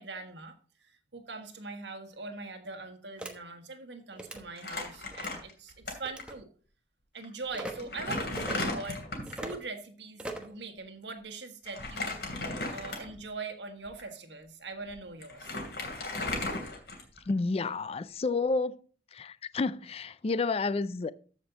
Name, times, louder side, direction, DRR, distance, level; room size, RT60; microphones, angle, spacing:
voice 1, 0.0-6.5 7.1-15.5, right 3 dB, 85° right, 1.5 m, -42 dB
sound 1, 3.2-3.3 4.1-4.4 5.1-5.4 6.0-6.4 7.5-7.7 8.4-8.6 9.3-9.6 10.2-10.5, right 1 dB, 5° right, 1.0 m, -39 dB
Crumpling crinkling, 4.6-5.9 6.2-6.3 7.2-7.3 7.7-9.5 11.7-13.3 13.9-14.0 14.9-15.0 15.2-17.3, left 2 dB, 70° left, 2.8 m, -35 dB
voice 2, 17.3-18.8 19.1-21.1, left 3 dB, 35° left, 0.4 m, -30 dB
14.0 x 5.3 x 4.0 m
head